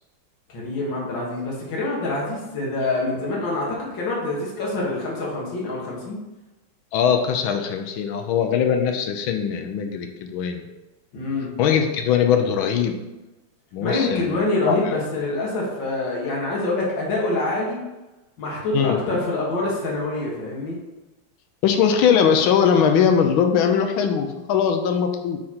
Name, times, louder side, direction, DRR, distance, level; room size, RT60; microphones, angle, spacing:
voice 1, 0.5-6.2 11.1-11.6 13.8-17.8 18.4-20.8, left 2 dB, 65° left, -4 dB, 2.2 m, -26 dB
voice 2, 6.9-10.6 11.6-13.0 13.7-14.4 14.7-14.8 18.7-19.0 21.6-25.4, left 7 dB, 80° left, 6 dB, 1.5 m, -20 dB
8.7 x 3.8 x 4.3 m, 1.1 s
omnidirectional pair, 2.2 m